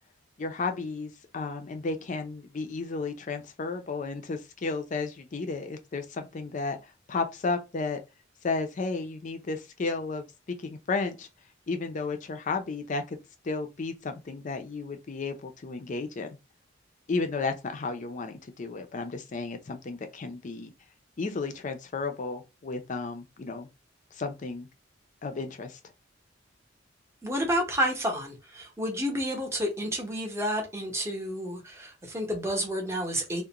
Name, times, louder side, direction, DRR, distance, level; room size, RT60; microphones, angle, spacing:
voice 1, 0.4-8.0 8.4-10.2 10.6-11.3 11.7-13.2 13.4-16.3 17.1-20.7 21.2-23.7 24.1-24.7 25.2-25.8, left 3 dB, 40° left, 0.5 m, -33 dB
voice 2, 27.2-33.4, equal, 15° right, 0.7 m, -30 dB
2.4 x 2.1 x 2.8 m
head